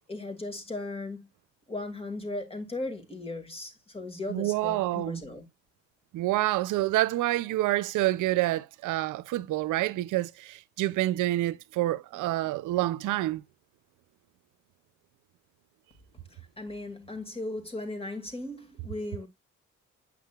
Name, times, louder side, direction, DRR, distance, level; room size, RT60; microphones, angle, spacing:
voice 1, 0.1-1.3 1.7-5.5 16.6-19.3, left 2 dB, 20° left, 2.1 m, -37 dB
voice 2, 4.3-5.2 6.1-13.4, right 16 dB, 85° right, 0.5 m, -27 dB
8.5 x 6.0 x 2.3 m
cardioid pair, 90°, 30 cm